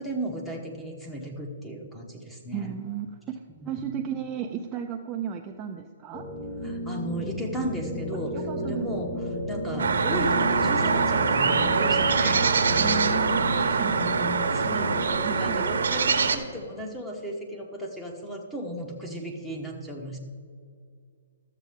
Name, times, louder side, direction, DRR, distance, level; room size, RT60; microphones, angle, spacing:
voice 1, 0.0-2.7 3.6-3.8 6.6-9.1 9.5-12.5 13.5-14.0 14.5-20.2, right 1 dB, 5° left, 1 dB, 1.1 m, -35 dB
voice 2, 2.5-6.3 6.6-6.7 8.3-8.9 12.8-14.7 15.2-15.7, right 7 dB, 20° right, 3 dB, 0.4 m, -35 dB
sound 1, 6.1-15.5, equal, 50° left, 1.3 m, -32 dB
sound 2, 9.8-16.4, right 5 dB, 80° right, 0.8 m, -24 dB
13.0 x 7.4 x 3.6 m, 2.2 s
hypercardioid pair, 155°, 0 cm